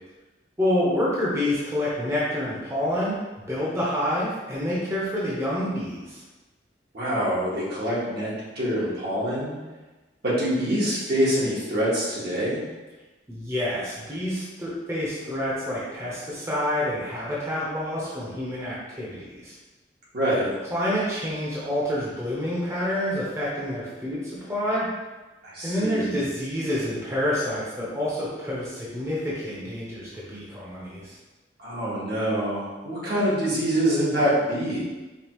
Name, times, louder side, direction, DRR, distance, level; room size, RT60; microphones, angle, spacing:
voice 1, 0.6-3.2 3.5-6.2 13.3-19.5 20.7-24.9 25.6-31.1, left 1 dB, 15° right, -8 dB, 0.8 m, -28 dB
voice 2, 6.9-9.6 10.2-12.6 20.1-20.5 25.4-26.2 31.6-34.8, equal, 65° right, -7 dB, 1.4 m, -25 dB
5.2 x 2.4 x 3.0 m, 1.2 s
head